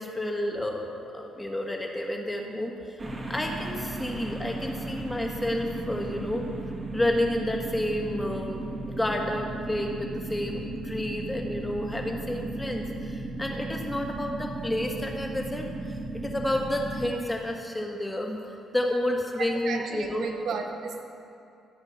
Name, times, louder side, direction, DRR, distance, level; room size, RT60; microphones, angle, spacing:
voice 1, 0.0-3.0 3.3-6.5 6.9-20.3, left 1 dB, 10° left, 1 dB, 1.8 m, -30 dB
sound 1, 3.0-17.1, right 2 dB, 30° right, 2.1 m, -35 dB
voice 2, 19.4-21.0, right 5 dB, 75° right, 3 dB, 1.4 m, -34 dB
15.0 x 8.0 x 5.9 m, 2.6 s
cardioid pair, 90°, 0 cm